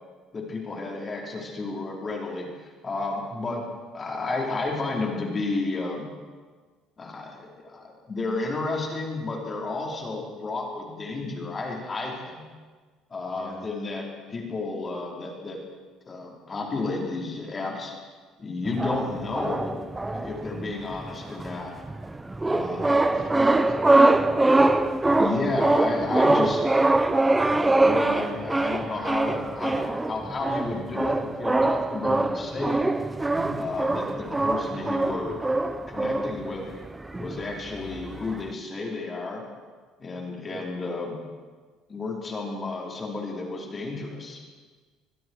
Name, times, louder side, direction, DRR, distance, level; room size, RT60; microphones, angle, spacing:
voice 1, 0.3-3.6 3.9-6.1 7.0-12.5 13.1-15.6 16.1-17.9 18.4-19.8 20.1-21.7 22.5-23.3 25.2-26.6 27.5-32.8 33.6-35.4 35.9-36.7 37.2-39.4 40.0-41.2 41.9-44.4, left 3 dB, 30° left, -1 dB, 4.9 m, -32 dB
voice 2, 3.3-3.7 13.3-13.7 22.4-22.7 23.0-24.6 33.3-33.6 40.5-40.6, right 3 dB, 50° right, -1 dB, 5.1 m, -40 dB
sound 1, 18.7-38.5, right 2 dB, 10° right, 0.8 m, -24 dB
27.5 x 20.5 x 4.9 m, 1.4 s
cardioid pair, 110°, 0 cm